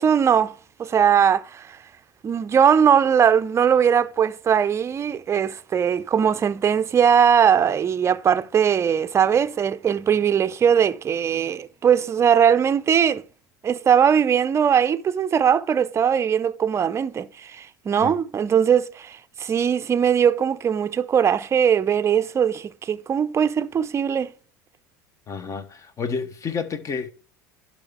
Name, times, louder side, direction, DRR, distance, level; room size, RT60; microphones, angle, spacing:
voice 1, 0.0-1.8 2.2-13.2 13.6-24.3, right 8 dB, 30° right, 0.5 m, -20 dB
voice 2, 25.3-27.1, left 5 dB, 35° left, 1.1 m, -30 dB
11.5 x 4.3 x 3.5 m
hypercardioid pair, 85°, 10 cm